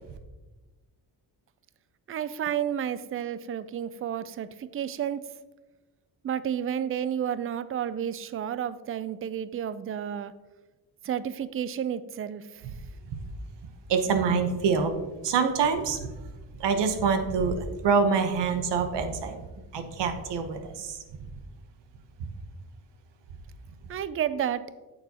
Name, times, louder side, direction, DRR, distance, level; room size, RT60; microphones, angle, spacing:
voice 1, 2.1-5.2 6.2-10.3 11.0-12.5 23.9-24.6, right 9 dB, 35° right, 15 dB, 0.4 m, -31 dB
voice 2, 13.9-15.0 15.2-16.1 16.6-19.4 19.7-21.0, right 5 dB, 70° right, 8 dB, 1.0 m, -25 dB
8.7 x 6.9 x 2.9 m, 1.2 s
cardioid pair, 95°, 44 cm